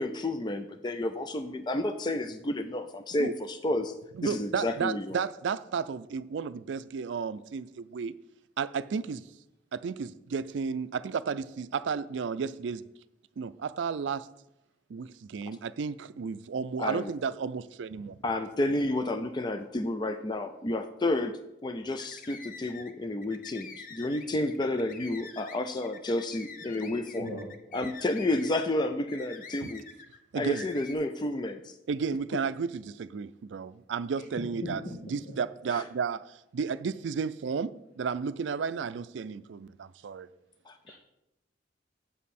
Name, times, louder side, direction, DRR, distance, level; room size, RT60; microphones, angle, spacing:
voice 1, 0.0-3.9 4.2-5.2 16.8-17.1 18.2-27.3 27.7-29.8 30.3-31.7 35.7-35.8 40.7-40.8, left 1 dB, 25° left, 0.4 m, -31 dB
voice 2, 4.2-8.1 8.6-9.2 9.7-12.8 13.4-14.3 14.9-18.2 30.3-30.7 31.9-34.8 35.1-40.3, right 5 dB, 80° right, 0.4 m, -33 dB
sound 1, 21.9-22.9 23.2-30.2 30.5-30.9, left 5 dB, 50° left, 0.8 m, -47 dB
voice 3, 26.7-27.4 34.6-34.7 40.9-41.0, left 1 dB, 85° left, 2.2 m, -38 dB
8.8 x 7.3 x 4.2 m
head